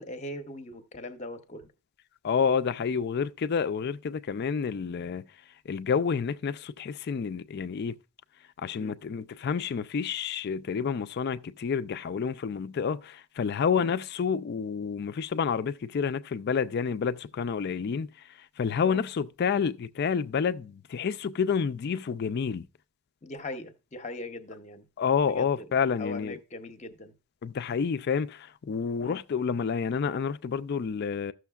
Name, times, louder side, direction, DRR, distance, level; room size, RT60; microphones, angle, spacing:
voice 1, 0.0-1.7 8.8-9.0 13.7-13.9 18.8-19.0 23.2-24.9 25.3-27.1 29.0-29.2, left 1 dB, 30° left, 0.7 m, -40 dB
voice 2, 2.2-5.2 5.7-7.9 8.6-18.1 18.6-22.7 25.0-26.4 27.4-31.3, left 6 dB, 45° left, 0.3 m, -29 dB
14.5 x 6.3 x 2.3 m
head